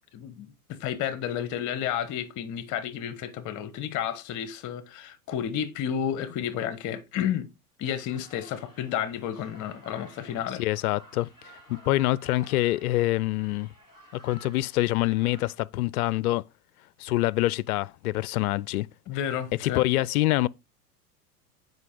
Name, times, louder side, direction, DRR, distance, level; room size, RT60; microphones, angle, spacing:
voice 1, 0.1-7.5 7.8-10.6 19.1-19.8, left 9 dB, 40° left, 1.1 m, -31 dB
sound 1, 7.8-15.5, equal, 10° right, 5.6 m, -53 dB
voice 2, 10.6-11.3 11.7-13.7 14.2-16.4 17.0-18.9 19.6-20.5, left 17 dB, 65° left, 0.5 m, -25 dB
8.0 x 5.3 x 3.8 m
hypercardioid pair, 100°, 47 cm